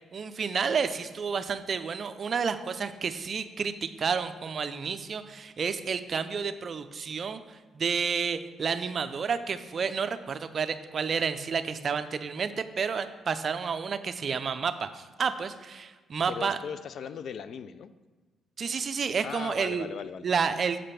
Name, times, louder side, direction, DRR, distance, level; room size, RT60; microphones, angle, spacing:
voice 1, 0.1-16.6 18.6-19.9 20.2-20.8, right 6 dB, 45° right, 10 dB, 0.5 m, -30 dB
voice 2, 16.3-17.9 19.2-20.3, left 7 dB, 60° left, 13 dB, 0.4 m, -38 dB
7.6 x 5.1 x 5.7 m, 1.3 s
cardioid pair, 90°, 0 cm